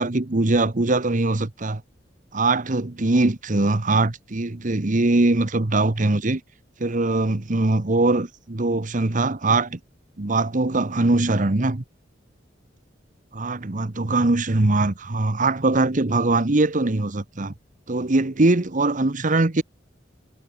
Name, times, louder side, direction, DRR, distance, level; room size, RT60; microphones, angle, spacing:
voice 1, 0.0-1.8 2.3-6.4 6.8-9.8 10.2-11.8 13.3-17.5 17.9-19.6, right 2 dB, 45° right, 1.1 m, -21 dB
head